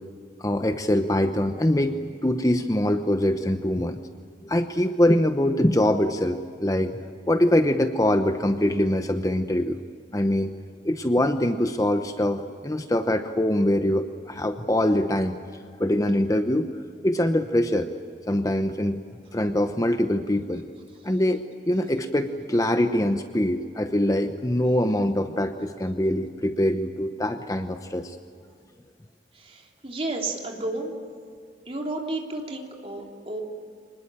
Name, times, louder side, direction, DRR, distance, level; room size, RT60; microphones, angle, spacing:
voice 1, 0.4-2.0 2.2-4.0 4.4-7.0 7.3-9.8 10.1-10.5 10.8-15.4 15.8-16.7 17.0-17.9 18.3-19.0 19.3-20.6 21.0-28.2, left 1 dB, 20° left, 8 dB, 0.9 m, -23 dB
voice 2, 29.4-30.9 31.7-33.4, right 2 dB, 35° right, 1 dB, 3.0 m, -32 dB
25.0 x 20.0 x 8.9 m, 2.2 s
head